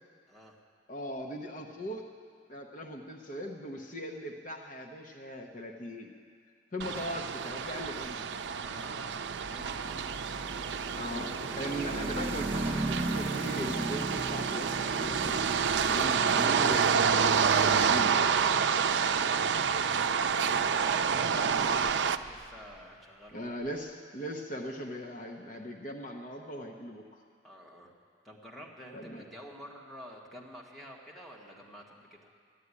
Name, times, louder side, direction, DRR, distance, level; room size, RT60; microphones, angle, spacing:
voice 1, 0.9-2.0 2.5-6.1 6.7-8.4 10.9-18.2 23.3-27.0 28.9-29.2, equal, 45° left, 1 dB, 0.9 m, -39 dB
sound 1, 6.8-22.2, right 6 dB, 75° right, 0.4 m, -28 dB
voice 2, 8.6-10.1 19.0-19.5 20.3-23.5 27.4-27.9 28.2-32.3, equal, ahead, -3 dB, 1.6 m, -49 dB
sound 2, 9.3-22.4, right 2 dB, 30° right, 1.1 m, -39 dB
12.5 x 10.0 x 9.7 m, 2.2 s
head